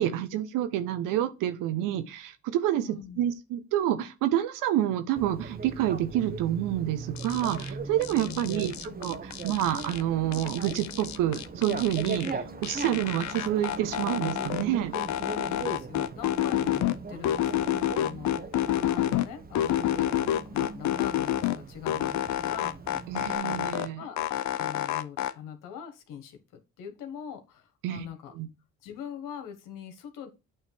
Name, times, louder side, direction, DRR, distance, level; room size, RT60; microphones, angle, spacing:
voice 1, 0.0-8.7 9.0-14.9 23.1-24.0 27.8-28.1 28.3-28.5, right 12 dB, 85° right, 1.1 m, -28 dB
voice 2, 2.8-3.2 8.3-8.7 15.4-22.7 23.1-23.7 24.0-24.2 24.6-28.3 28.8-30.3, left 8 dB, 85° left, 1.4 m, -43 dB
Bicycle, 5.2-23.4, right 4 dB, 30° right, 1.1 m, -39 dB
sound 1, 7.2-7.7 8.0-10.0 10.3-12.3 12.6-14.6 14.9-17.0 17.2-19.3 19.6-21.6 21.9-23.9 24.2-25.3, left 11 dB, 60° left, 0.7 m, -29 dB
9.0 x 3.2 x 4.6 m
supercardioid pair, 75°, 31 cm